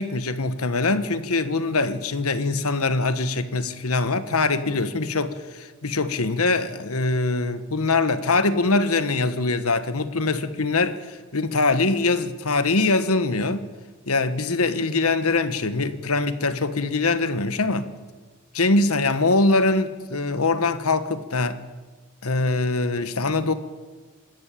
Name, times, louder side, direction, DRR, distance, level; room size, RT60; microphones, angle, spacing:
voice 1, 0.0-13.6 14.1-17.9 18.5-21.6 22.2-23.5, left 3 dB, 90° left, 1.4 m, -23 dB
27.5 x 13.0 x 8.6 m
head